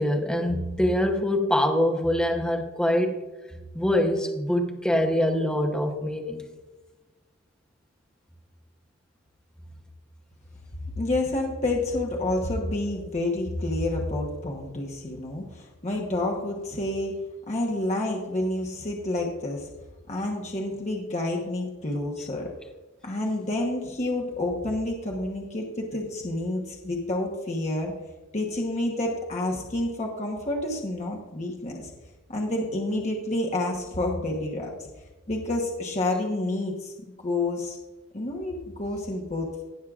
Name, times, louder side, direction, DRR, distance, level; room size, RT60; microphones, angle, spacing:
voice 1, 0.0-3.2 3.7-6.4, left 1 dB, 5° left, 2 dB, 0.8 m, -24 dB
voice 2, 10.8-17.1 17.5-19.7 20.1-22.5 23.0-27.9 28.3-31.9 32.3-34.9 35.3-36.9 37.2-37.8 38.1-39.6, left 2 dB, 35° left, 0 dB, 1.1 m, -29 dB
18.5 x 6.4 x 2.4 m, 1.2 s
head